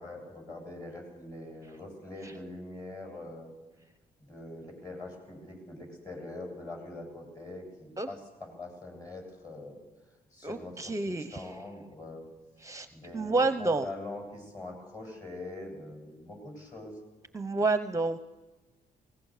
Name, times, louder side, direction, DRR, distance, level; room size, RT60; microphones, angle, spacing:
voice 1, 0.0-3.5 4.3-9.8 10.3-12.3 12.9-17.0, left 2 dB, 25° left, 2 dB, 7.9 m, -43 dB
voice 2, 10.4-11.5 12.6-12.9 13.1-13.9 17.3-18.2, right 3 dB, 20° right, 12 dB, 0.8 m, -29 dB
22.0 x 19.0 x 6.7 m, 1.2 s
cardioid pair, 85°, 16 cm